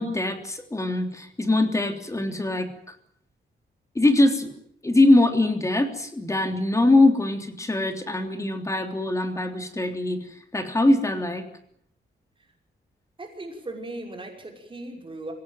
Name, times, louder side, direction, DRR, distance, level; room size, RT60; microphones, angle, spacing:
voice 1, 0.0-2.7 3.9-4.6 4.8-11.4, left 2 dB, 15° left, 6 dB, 3.4 m, -22 dB
voice 2, 13.2-15.3, right 2 dB, 25° right, 2 dB, 5.9 m, -37 dB
26.0 x 17.0 x 9.2 m, 0.67 s
wide cardioid pair, 145°, 19 cm